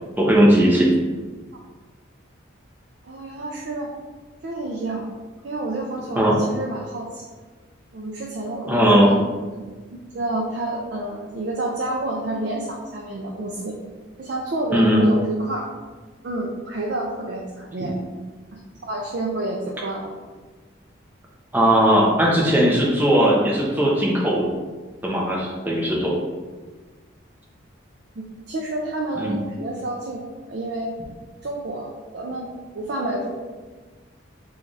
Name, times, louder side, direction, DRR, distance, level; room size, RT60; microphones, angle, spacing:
voice 1, 0.2-0.9 6.2-6.4 8.6-9.1 14.7-15.0 21.5-24.5 25.0-26.2 29.2-29.4, equal, 10° right, -4 dB, 0.6 m, -18 dB
voice 2, 3.0-3.9 4.4-5.0 5.4-7.2 7.9-9.2 9.5-9.6 10.1-13.7 14.2-15.7 16.2-18.0 18.5-18.6 18.9-20.1 28.5-30.2 30.5-30.9 31.4-32.5 32.7-33.3, right 2 dB, 55° right, -1 dB, 0.4 m, -29 dB
3.2 x 2.4 x 3.9 m, 1.3 s
head